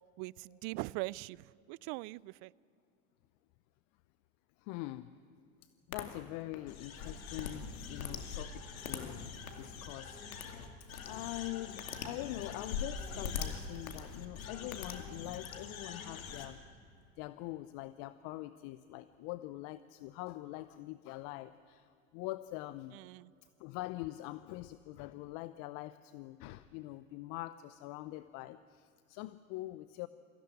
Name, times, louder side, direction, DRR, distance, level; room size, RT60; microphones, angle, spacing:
voice 1, 0.2-2.5 22.9-23.3, right 22 dB, 50° right, 0.5 m, -41 dB
voice 2, 4.6-5.2 5.9-9.2 9.6-16.6 17.2-23.0 23.6-30.1, left 17 dB, 50° left, 0.8 m, -44 dB
sound 1, 5.9-6.0 6.5-16.5, left 6 dB, 75° left, 2.5 m, -42 dB
23.5 x 16.0 x 9.9 m
hypercardioid pair, 90°, 41 cm